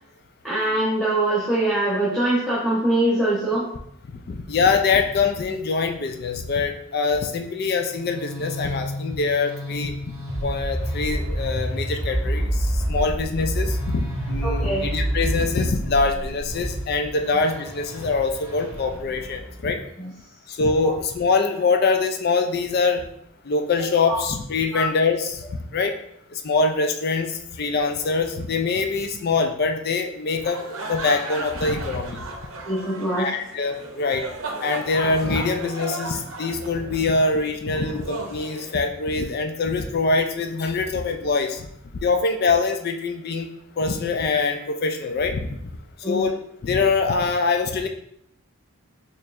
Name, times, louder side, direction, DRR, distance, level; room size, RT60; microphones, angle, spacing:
voice 1, 0.4-3.7 14.4-14.9 20.0-20.1 20.8-20.9 24.0-24.2 24.7-24.9 32.7-33.3 42.1-42.2 46.0-46.3, right 1 dB, ahead, -9 dB, 0.8 m, -23 dB
voice 2, 4.3-10.1 10.4-19.8 20.5-23.1 23.4-26.0 26.3-32.2 33.2-34.3 34.6-41.7 41.9-43.5 43.8-45.6 46.1-46.3 46.6-47.9, left 4 dB, 45° left, 5 dB, 0.3 m, -24 dB
sound 1, 7.7-19.6, equal, 30° right, 1.3 m, -28 dB
sound 2, 30.3-39.3, right 2 dB, 70° right, 0.6 m, -35 dB
4.4 x 3.1 x 2.5 m, 0.73 s
head